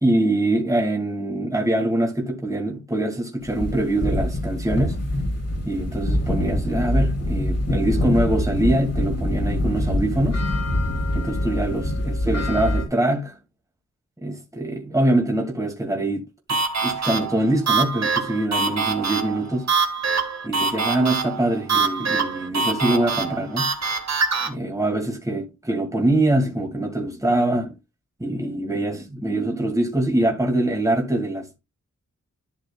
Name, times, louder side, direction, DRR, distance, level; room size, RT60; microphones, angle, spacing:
voice 1, 0.0-5.0 5.6-10.4 11.1-13.3 14.2-19.7 20.4-23.7 24.4-27.7 28.2-31.6, right 1 dB, 10° right, 2.4 m, -24 dB
sound 1, 3.4-12.8, left 1 dB, 55° left, 3.0 m, -24 dB
sound 2, 16.5-24.5, right 5 dB, 60° right, 1.8 m, -24 dB
12.0 x 6.6 x 2.4 m
cardioid pair, 60°, 30 cm